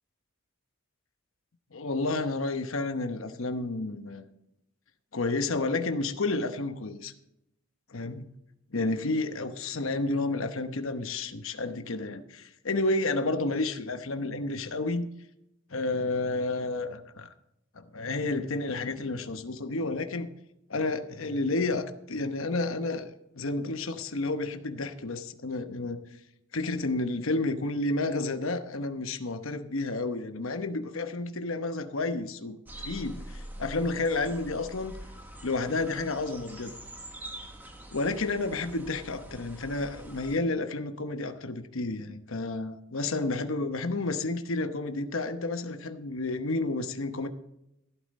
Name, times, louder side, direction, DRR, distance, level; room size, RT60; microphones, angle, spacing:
voice 1, 1.7-4.2 5.1-7.1 7.9-8.3 8.7-15.1 15.7-17.3 17.8-20.3 20.7-26.0 26.5-32.6 32.8-35.0 35.4-36.7 37.9-47.3, left 2 dB, 70° left, 9 dB, 0.9 m, -31 dB
sound 1, 32.7-40.4, right 1 dB, 10° right, 1.2 m, -44 dB
15.0 x 8.7 x 4.2 m, 0.83 s
head